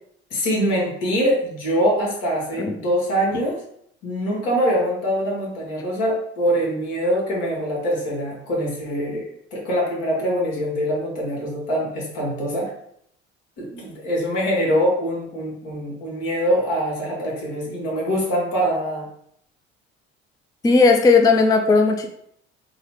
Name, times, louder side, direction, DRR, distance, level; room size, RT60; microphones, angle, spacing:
voice 1, 0.3-3.6 4.0-12.7 13.6-19.1, equal, 70° left, -3 dB, 1.4 m, -23 dB
voice 2, 20.6-22.1, left 4 dB, 10° left, 4 dB, 0.3 m, -16 dB
3.8 x 2.0 x 3.0 m, 0.70 s
hypercardioid pair, 60°, 33 cm